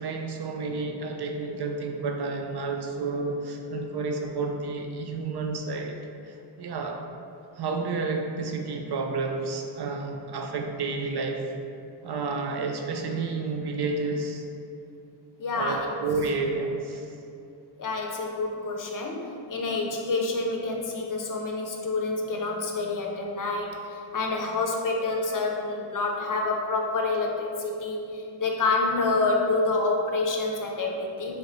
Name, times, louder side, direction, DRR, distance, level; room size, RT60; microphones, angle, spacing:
voice 1, 0.0-7.0 7.6-11.5 12.0-14.4 15.5-17.2, right 3 dB, 60° right, 3 dB, 0.5 m, -30 dB
voice 2, 15.4-15.9 17.8-31.4, left 3 dB, 45° left, 1 dB, 0.6 m, -28 dB
3.1 x 3.1 x 3.9 m, 2.6 s
cardioid pair, 60°, 46 cm